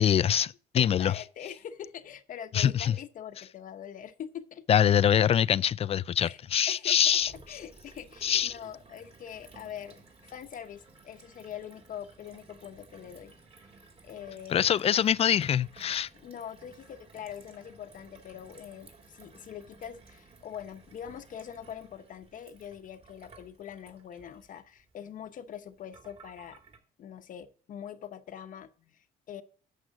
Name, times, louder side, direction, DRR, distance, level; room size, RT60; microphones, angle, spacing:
voice 1, 0.0-1.2 2.5-3.0 4.7-7.3 8.2-8.6 14.5-16.1, left 9 dB, 35° left, 0.4 m, -24 dB
voice 2, 0.7-4.6 6.2-6.4 6.7-7.0 7.5-13.3 14.0-14.7 16.1-26.6 27.0-29.4, left 9 dB, 50° left, 0.8 m, -43 dB
Gurgling / Water tap faucet / Sink (filling or washing), 6.9-26.8, right 3 dB, 35° right, 3.0 m, -56 dB
11.5 x 7.7 x 3.8 m
cardioid pair, 110°, 17 cm